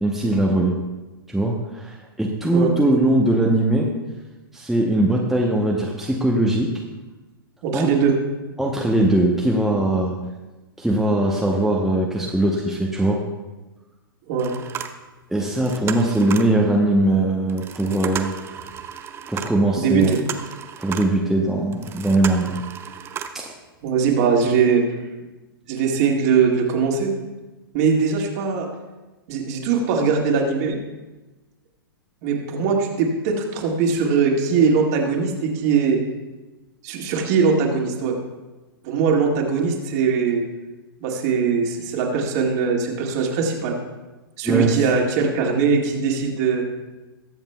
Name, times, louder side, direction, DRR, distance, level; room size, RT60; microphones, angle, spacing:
voice 1, 0.0-0.8 1.3-3.9 4.5-6.7 7.7-7.9 8.6-10.1 10.8-13.2 15.3-18.3 19.3-20.1 20.8-22.6 23.3-23.5 44.4-44.8, right 1 dB, ahead, -2 dB, 0.9 m, -20 dB
voice 2, 7.6-8.1 14.3-14.5 19.8-20.2 23.8-24.8 25.7-27.1 27.7-28.7 29.3-30.8 32.2-36.0 36.8-38.1 38.8-40.4 41.0-43.8 44.4-46.6, right 5 dB, 45° right, 0 dB, 2.0 m, -21 dB
sound 1, 14.4-15.3 15.6-16.6 17.5-21.3 21.7-23.5 24.0-24.1 24.5-24.6, right 8 dB, 20° right, 0.5 m, -34 dB
21.0 x 7.1 x 2.3 m, 1.1 s
figure-of-eight pair, 110°, 12 cm